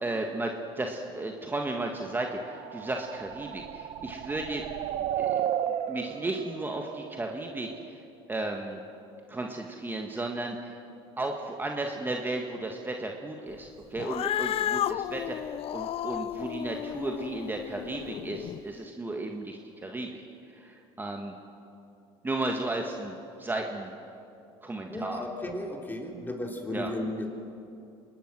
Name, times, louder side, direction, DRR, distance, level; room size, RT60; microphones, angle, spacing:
voice 1, 0.0-4.6 5.2-5.4 5.9-7.7 8.3-8.8 9.3-10.7 11.2-15.4 15.7-20.2 20.6-21.3 22.2-23.9 24.6-25.2 26.7-26.9, right 2 dB, 15° right, 2 dB, 1.7 m, -34 dB
sound 1, 2.1-7.9, right 10 dB, 60° right, 0.9 m, -34 dB
Cat, 14.0-18.6, left 11 dB, 50° left, 0.6 m, -33 dB
voice 2, 24.9-27.3, left 1 dB, 15° left, 1 dB, 3.6 m, -34 dB
26.0 x 20.0 x 6.2 m, 2.7 s
supercardioid pair, 90°, 13 cm